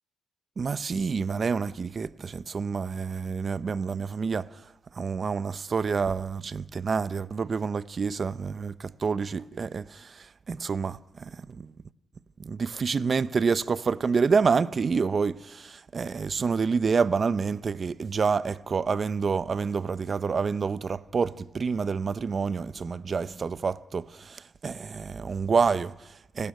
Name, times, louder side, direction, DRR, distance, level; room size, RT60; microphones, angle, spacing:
voice 1, 0.6-4.5 4.9-11.7 12.4-26.5, right 5 dB, 40° right, 0.7 m, -28 dB
29.5 x 12.5 x 9.4 m
cardioid pair, 90°, 0 cm